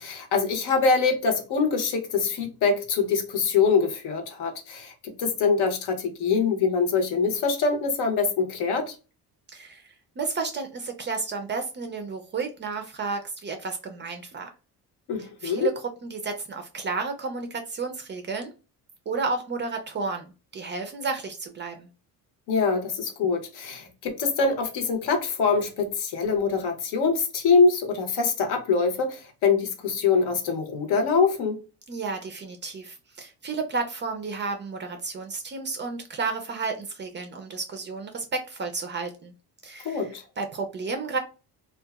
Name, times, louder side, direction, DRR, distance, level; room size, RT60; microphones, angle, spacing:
voice 1, 0.0-8.9 15.1-15.7 22.5-31.6 39.8-40.2, left 5 dB, 70° left, 0.8 m, -24 dB
voice 2, 9.5-14.5 15.4-15.7 16.0-18.5 19.1-21.9 31.9-39.3 39.6-40.1 40.4-41.2, right 4 dB, 30° right, 0.4 m, -32 dB
2.7 x 2.3 x 2.2 m
cardioid pair, 130°, 41 cm